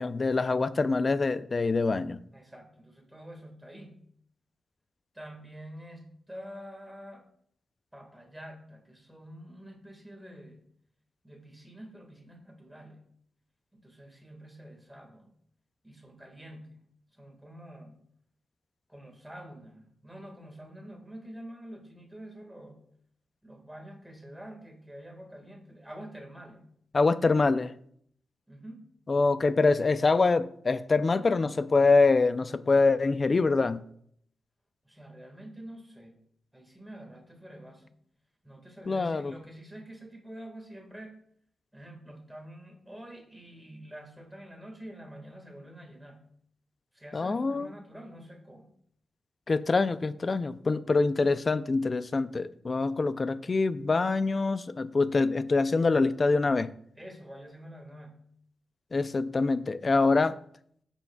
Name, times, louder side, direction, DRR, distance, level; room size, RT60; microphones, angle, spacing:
voice 1, 0.0-2.2 26.9-27.7 29.1-33.8 38.9-39.3 47.1-47.7 49.5-56.7 58.9-60.4, left 3 dB, 35° left, 0.4 m, -25 dB
voice 2, 2.3-4.0 5.1-7.2 7.9-10.7 11.2-13.0 13.7-15.3 15.8-16.8 17.1-18.0 18.9-22.8 23.4-26.6 28.5-28.8 34.8-36.2 36.5-37.9 38.4-41.1 41.7-46.2 46.9-48.7 57.0-58.2, right 1 dB, 5° right, 1.7 m, -47 dB
16.0 x 7.0 x 2.3 m
wide cardioid pair, 130°, 0 cm